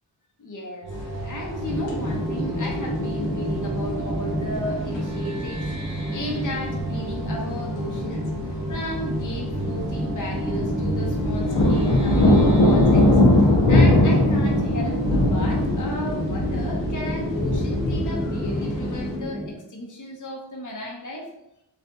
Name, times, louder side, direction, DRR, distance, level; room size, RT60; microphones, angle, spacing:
voice 1, 0.4-0.9 1.2-8.2 8.7-13.0 13.7-21.2, left 1 dB, 45° left, -1 dB, 0.7 m, -34 dB
sound 1, 0.8-16.3, right 2 dB, 85° right, 0.7 m, -35 dB
sound 2, 0.9-19.2, left 1 dB, 80° left, 0.7 m, -23 dB
sound 3, 1.7-19.5, equal, ahead, 0.4 m, -30 dB
2.7 x 2.4 x 2.2 m, 0.84 s
cardioid pair, 50°, 43 cm